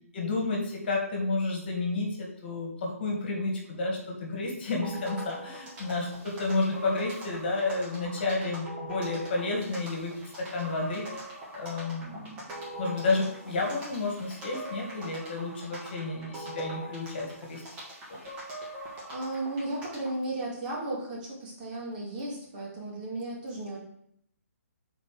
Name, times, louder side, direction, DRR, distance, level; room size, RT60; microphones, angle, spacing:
voice 1, 0.1-11.3 11.5-12.5 12.8-17.6, left 3 dB, 45° left, 0 dB, 1.8 m, -31 dB
sound 1, 4.8-20.2, right 1 dB, 15° right, 1.7 m, -42 dB
voice 2, 19.1-23.8, right 2 dB, 30° right, -4 dB, 2.2 m, -35 dB
6.8 x 4.4 x 4.8 m, 0.70 s
hypercardioid pair, 160°, 8 cm